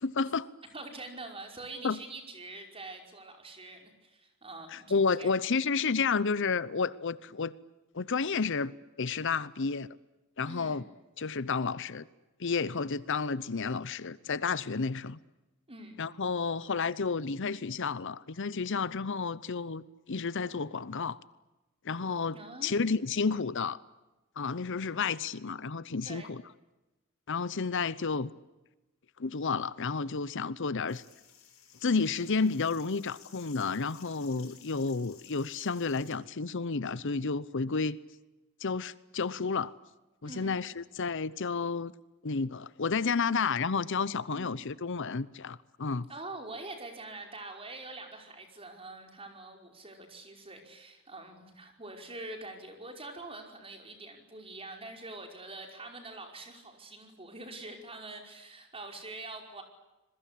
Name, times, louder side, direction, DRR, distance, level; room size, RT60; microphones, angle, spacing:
voice 1, 0.0-0.5 1.8-2.0 4.7-7.5 7.9-8.7 9.0-9.9 10.4-10.8 11.2-12.1 12.4-15.2 16.0-19.8 20.1-21.2 21.8-23.8 24.4-26.4 27.3-28.3 29.2-31.0 31.8-38.0 38.6-39.7 40.2-41.9 42.2-46.1, left 4 dB, 60° left, 0.8 m, -31 dB
voice 2, 0.7-4.9 5.1-5.4 10.4-10.8 15.7-16.0 22.3-23.0 26.0-26.3 40.2-40.6 44.3-44.6 46.1-59.6, right 2 dB, 25° right, 5.2 m, -45 dB
sound 1, 30.9-36.2, left 9 dB, 80° left, 7.1 m, -56 dB
27.5 x 22.0 x 8.5 m
head